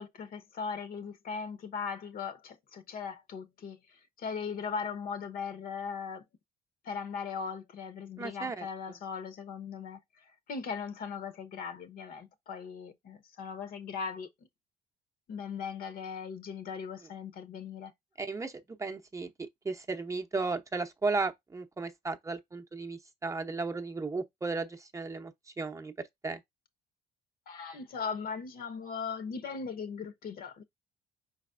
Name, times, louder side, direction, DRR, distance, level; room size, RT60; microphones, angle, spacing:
voice 1, 0.0-3.8 4.2-6.2 6.8-10.0 10.5-14.3 15.3-17.9 27.5-30.6, left 6 dB, 60° left, 1.0 m, -38 dB
voice 2, 8.2-9.0 18.2-26.4, right 3 dB, 20° right, 0.7 m, -35 dB
5.1 x 4.1 x 2.5 m
cardioid pair, 110°, 17 cm